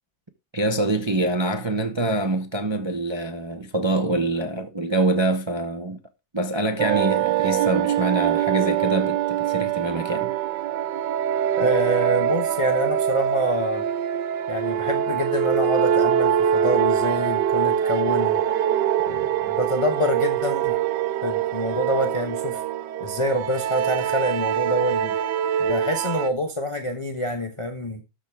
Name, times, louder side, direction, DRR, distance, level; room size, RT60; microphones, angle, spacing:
voice 1, 0.5-6.0 6.3-10.3, right 2 dB, 30° right, 0.5 m, -25 dB
sound 1, 6.8-26.3, right 10 dB, 70° right, 1.2 m, -23 dB
voice 2, 11.6-13.8 14.5-18.4 19.1-20.8 21.2-22.6 23.0-25.2 25.6-28.0, left 1 dB, 25° left, 0.7 m, -26 dB
13.0 x 6.3 x 3.5 m
omnidirectional pair, 2.1 m